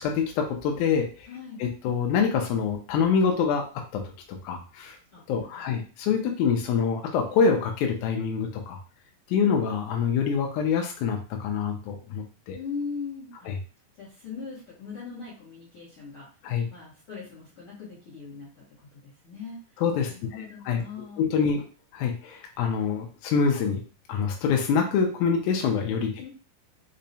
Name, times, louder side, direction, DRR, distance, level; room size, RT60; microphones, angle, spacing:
voice 1, 0.0-1.3 1.6-4.0 4.3-5.0 5.3-8.8 9.3-12.6 13.5-13.6 16.4-16.7 19.8-20.8 21.2-21.6 21.9-23.8 24.1-26.3, left 6 dB, 80° left, 2 dB, 1.9 m, -26 dB
voice 2, 1.3-1.6 5.1-5.8 12.5-13.5 13.9-16.3 16.7-21.2 26.2-26.3, left 5 dB, 65° left, -7 dB, 1.3 m, -40 dB
5.4 x 2.0 x 2.6 m, 0.37 s
omnidirectional pair, 3.7 m